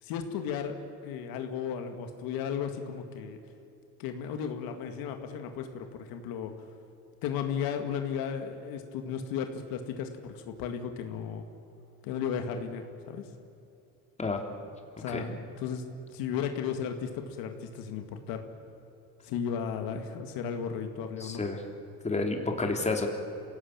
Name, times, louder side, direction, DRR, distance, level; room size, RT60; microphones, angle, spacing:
voice 1, 0.0-0.8 1.0-3.4 4.0-6.5 7.2-11.4 12.0-13.2 15.0-15.8 16.1-18.4 19.2-21.4, left 7 dB, 85° left, 6 dB, 2.2 m, -35 dB
voice 2, 21.2-21.6 22.0-23.1, left 3 dB, 20° left, 3 dB, 3.2 m, -30 dB
26.5 x 17.5 x 8.8 m, 2.8 s
cardioid pair, 110°, 34 cm